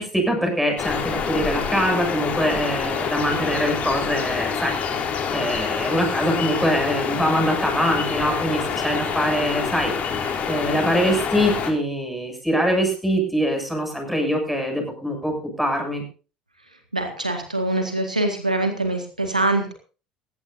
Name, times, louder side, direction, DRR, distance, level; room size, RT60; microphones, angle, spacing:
voice 1, 0.0-4.7 5.3-9.9 10.5-16.0, equal, ahead, 3 dB, 7.2 m, -23 dB
sound 1, 0.8-11.7, left 6 dB, 40° left, 3.7 m, -26 dB
voice 2, 16.9-19.7, right 2 dB, 85° right, 5 dB, 1.9 m, -24 dB
19.0 x 15.5 x 2.7 m, 0.36 s
figure-of-eight pair, 65°, 4 cm